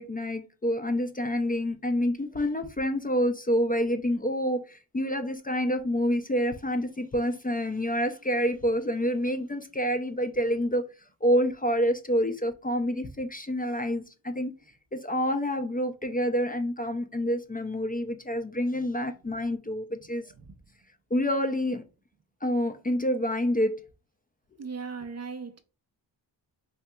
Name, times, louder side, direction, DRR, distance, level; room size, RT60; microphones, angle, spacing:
voice 1, 0.0-10.9 11.2-14.5 14.9-20.2 21.1-21.8 22.4-23.8, equal, 20° left, 0.5 m, -27 dB
voice 2, 20.3-20.8 24.6-25.6, right 5 dB, 40° right, 0.5 m, -39 dB
4.2 x 2.7 x 2.2 m
cardioid pair, 50°, 44 cm